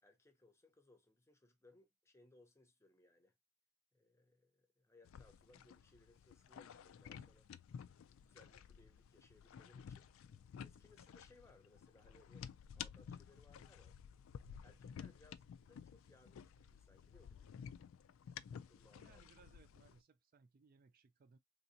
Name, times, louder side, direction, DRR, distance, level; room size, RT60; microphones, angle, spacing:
voice 1, 0.0-3.3 3.9-7.5 8.1-10.1 10.6-12.5 12.7-14.0 14.6-17.6 18.4-19.2, left 2 dB, 15° left, 0.6 m, -68 dB
sound 1, 5.0-20.0, left 7 dB, 70° left, 0.3 m, -54 dB
voice 2, 19.0-21.4, right 5 dB, 40° right, 0.3 m, -67 dB
3.4 x 2.7 x 2.6 m
head